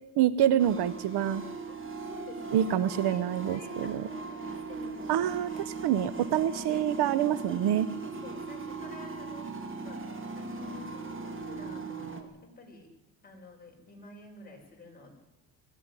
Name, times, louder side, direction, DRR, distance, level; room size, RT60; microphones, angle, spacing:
voice 1, 0.2-1.4 2.5-3.9 5.1-7.9, right 10 dB, 55° right, 15 dB, 0.9 m, -26 dB
sound 1, 0.6-12.2, right 4 dB, 25° right, 2.4 m, -39 dB
voice 2, 2.0-6.3 6.5-7.1 7.7-10.0 10.3-12.9 13.2-15.1, left 3 dB, 20° left, 0 dB, 5.8 m, -49 dB
21.0 x 14.5 x 9.8 m, 1.0 s
cardioid pair, 135°, 47 cm